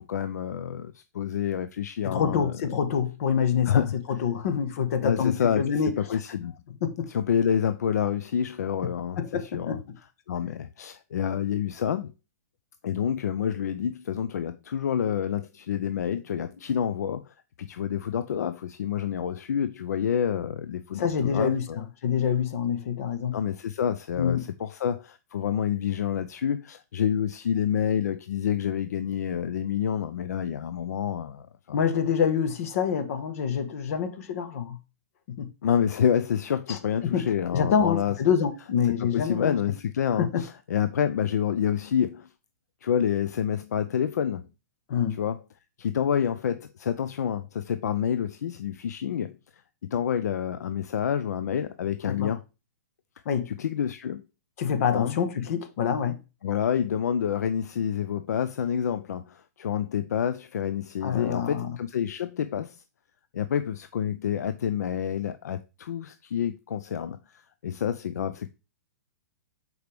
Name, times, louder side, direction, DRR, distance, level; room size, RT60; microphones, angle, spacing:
voice 1, 0.0-2.6 3.7-4.2 5.0-6.5 7.1-9.8 10.3-12.1 12.8-21.8 23.3-31.8 35.6-38.2 38.8-42.3 42.8-44.5 45.1-45.4 45.8-49.4 49.8-52.4 53.5-54.2 54.9-55.2 56.4-62.8 63.3-68.5, left 8 dB, 80° left, 0.5 m, -28 dB
voice 2, 2.0-3.8 4.2-6.2 6.8-7.0 9.2-9.8 21.0-23.4 24.2-24.4 31.7-34.8 35.3-35.5 36.7-36.8 37.0-37.2 37.5-39.5 40.2-40.4 44.9-45.2 52.1-52.3 53.2-53.5 54.6-56.2 61.0-61.8, left 7 dB, 60° left, 1.3 m, -26 dB
6.6 x 4.6 x 3.4 m
hypercardioid pair, 140°, 9 cm